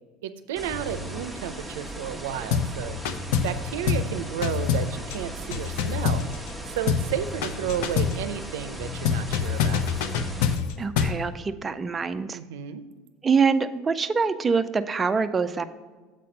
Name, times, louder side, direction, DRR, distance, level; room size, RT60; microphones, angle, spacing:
voice 1, 0.2-3.0 3.4-6.2 6.7-9.9 12.3-12.8, right 10 dB, 90° right, 11 dB, 0.5 m, -32 dB
sound 1, 0.6-10.6, right 1 dB, 5° left, 1.0 m, -38 dB
sound 2, 0.7-1.3 2.3-2.4 2.6-4.3 6.5-6.6 6.9-8.1 8.8-10.5, left 4 dB, 30° left, 0.7 m, -39 dB
sound 3, 2.5-2.8 3.0-3.6 3.9-4.1 4.4-6.6 6.9-7.1 7.4-8.2 9.0-11.2, left 7 dB, 75° left, 0.6 m, -25 dB
voice 2, 10.8-12.4 13.2-15.6, right 5 dB, 20° right, 9 dB, 0.4 m, -24 dB
7.5 x 4.2 x 6.4 m, 1.4 s
supercardioid pair, 110°, 0 cm